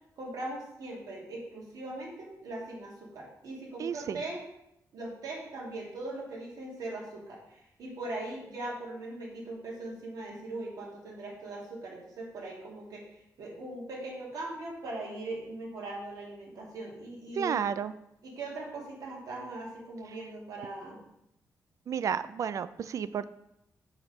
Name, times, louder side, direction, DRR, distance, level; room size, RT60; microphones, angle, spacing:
voice 1, 0.2-4.4 4.9-17.6 18.2-21.0, right 2 dB, 75° right, -3 dB, 2.4 m, -40 dB
voice 2, 3.8-4.2 17.3-17.9 21.9-23.2, right 8 dB, 55° right, 14 dB, 0.4 m, -31 dB
5.9 x 4.9 x 5.2 m, 0.82 s
wide cardioid pair, 135°, 6 cm